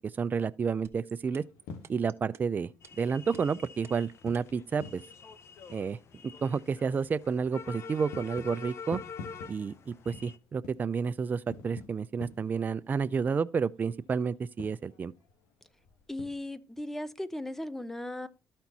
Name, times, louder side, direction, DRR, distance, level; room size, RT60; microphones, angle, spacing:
voice 1, 0.0-1.4 1.9-2.7 3.0-5.0 5.7-6.0 6.2-9.0 9.5-15.1, right 5 dB, 35° right, 0.4 m, -30 dB
sound 1, 0.8-4.6, right 8 dB, 50° right, 1.1 m, -51 dB
sound 2, 1.1-16.4, left 4 dB, 90° left, 1.3 m, -51 dB
sound 3, 2.8-10.4, left 5 dB, 55° left, 0.8 m, -46 dB
voice 2, 16.1-18.3, left 1 dB, 5° left, 0.8 m, -37 dB
13.0 x 4.4 x 4.1 m
cardioid pair, 85°, 5 cm